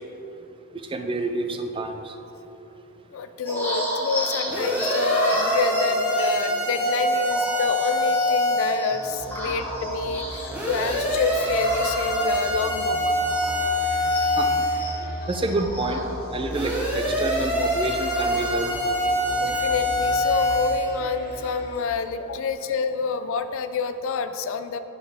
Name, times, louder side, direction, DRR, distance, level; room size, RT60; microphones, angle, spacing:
voice 1, 0.7-2.1 14.4-14.5 15.3-16.0 16.3-19.0 19.4-19.6, right 2 dB, 25° right, 5 dB, 0.3 m, -28 dB
voice 2, 3.1-13.2 19.4-24.8, left 5 dB, 60° left, 10 dB, 0.3 m, -28 dB
sound 1, 3.5-13.8 14.0-18.9 19.3-19.5 19.8-21.0 21.3-21.8, equal, 10° left, 1.1 m, -33 dB
sound 2, 4.5-8.8 10.5-14.8 16.5-20.8, equal, 5° right, 1.0 m, -24 dB
sound 3, 8.8-22.5, left 1 dB, 45° left, 0.8 m, -38 dB
10.0 x 3.9 x 3.5 m, 3.0 s
head